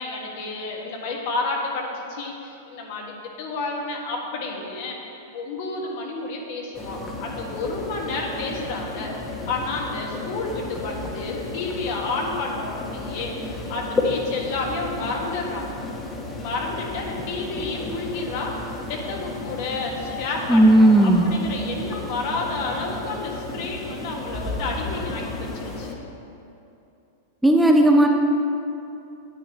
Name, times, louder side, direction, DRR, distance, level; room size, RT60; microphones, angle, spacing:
voice 1, 0.0-5.0 5.3-9.1 9.5-15.7 16.4-25.9, left 3 dB, 60° left, 0 dB, 1.5 m, -30 dB
sound 1, 6.7-25.9, left 2 dB, 20° left, 1.1 m, -33 dB
voice 2, 20.5-21.2 27.4-28.1, right 1 dB, 5° right, 1 dB, 0.6 m, -14 dB
9.2 x 8.6 x 3.0 m, 2.7 s
hypercardioid pair, 115°, 0 cm